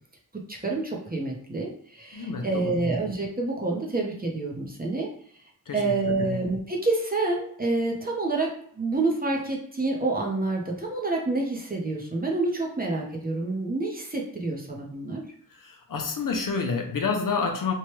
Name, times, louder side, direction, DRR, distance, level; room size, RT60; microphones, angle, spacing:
voice 1, 0.5-5.1 5.7-15.2, right 3 dB, 25° right, -1 dB, 0.7 m, -28 dB
voice 2, 2.1-2.9 5.7-6.4 15.5-17.7, left 4 dB, 60° left, 3 dB, 0.6 m, -29 dB
3.1 x 2.2 x 3.0 m, 0.64 s
wide cardioid pair, 75°, 36 cm